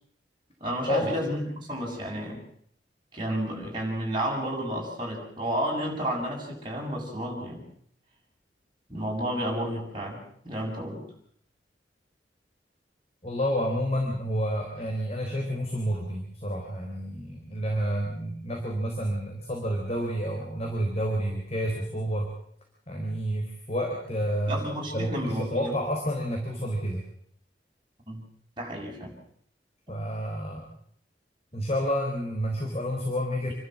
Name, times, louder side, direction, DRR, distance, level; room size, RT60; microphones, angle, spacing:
voice 1, 0.6-2.4 3.1-7.6 8.9-11.0 24.5-25.7 28.1-28.2 28.6-29.2, equal, 25° right, -2 dB, 7.4 m, -31 dB
voice 2, 13.2-22.3 22.9-24.6 24.9-27.0 29.9-30.7 31.5-33.5, equal, 35° left, 1 dB, 3.9 m, -29 dB
28.0 x 12.5 x 7.7 m, 0.66 s
head